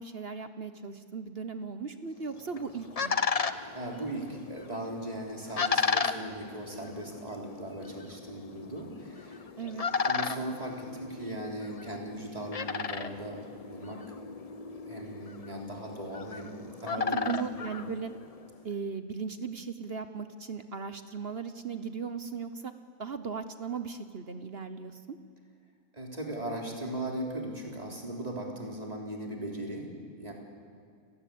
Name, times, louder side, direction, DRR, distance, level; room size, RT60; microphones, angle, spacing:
voice 1, 0.0-3.2 5.8-6.1 9.6-9.8 17.1-18.1 18.6-22.7 23.0-25.2, right 5 dB, 45° right, 10 dB, 1.0 m, -37 dB
sound 1, 2.3-18.5, left 5 dB, 45° left, 0.4 m, -35 dB
voice 2, 3.7-9.8 10.0-13.4 13.7-14.2 14.6-17.3 25.9-29.9 30.2-30.3, right 1 dB, 25° right, 0 dB, 3.8 m, -38 dB
29.5 x 17.5 x 8.6 m, 2.3 s
omnidirectional pair, 1.7 m